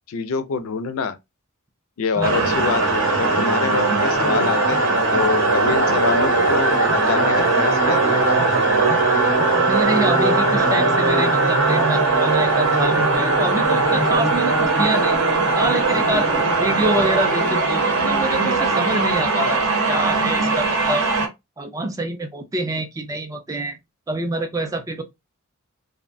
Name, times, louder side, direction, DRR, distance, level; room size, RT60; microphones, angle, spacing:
voice 1, 0.1-1.2 2.0-8.3, left 5 dB, 65° left, 0.4 m, -26 dB
sound 1, 2.2-21.3, right 3 dB, 60° right, 0.8 m, -19 dB
voice 2, 9.5-15.2 15.5-16.3 16.6-21.1 21.6-23.8 24.1-25.0, right 2 dB, 15° right, 0.3 m, -26 dB
2.6 x 2.1 x 2.4 m
head